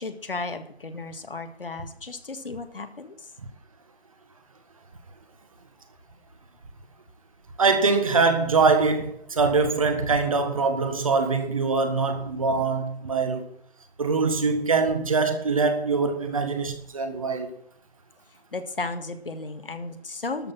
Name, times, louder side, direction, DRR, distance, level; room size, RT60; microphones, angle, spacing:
voice 1, 0.0-3.3 18.5-20.5, left 3 dB, 60° left, 1.9 m, -34 dB
voice 2, 7.6-13.5 14.0-17.5, right 4 dB, 30° right, 1.6 m, -23 dB
13.0 x 6.7 x 7.7 m
figure-of-eight pair, 165°, 32 cm